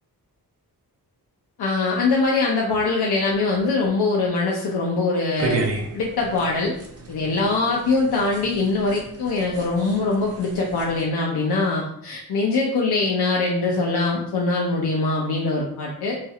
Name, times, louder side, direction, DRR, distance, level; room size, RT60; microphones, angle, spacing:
voice 1, 1.6-5.6 5.9-6.7 7.1-16.2, left 3 dB, 85° left, -3 dB, 0.6 m, -22 dB
sound 1, 5.4-11.0, right 2 dB, 40° right, 0.5 m, -33 dB
4.0 x 3.2 x 2.3 m, 0.73 s
wide cardioid pair, 170°, 38 cm